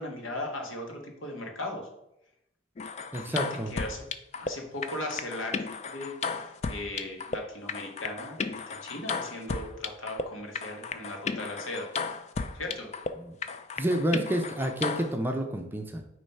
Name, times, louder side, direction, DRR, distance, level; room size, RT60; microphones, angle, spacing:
voice 1, 0.0-1.9 3.2-3.4 3.7-4.1 4.3-11.9 12.5-12.9, left 1 dB, 80° left, 2 dB, 1.6 m, -38 dB
sound 1, 2.8-4.5 4.8-7.4 7.7-10.2 10.5-13.1 13.4-15.1, left 4 dB, 35° left, 0.4 m, -34 dB
voice 2, 3.1-3.7 13.2-13.4 13.8-16.0, right 1 dB, 10° right, 4 dB, 0.6 m, -29 dB
8.9 x 3.2 x 5.5 m, 0.83 s
head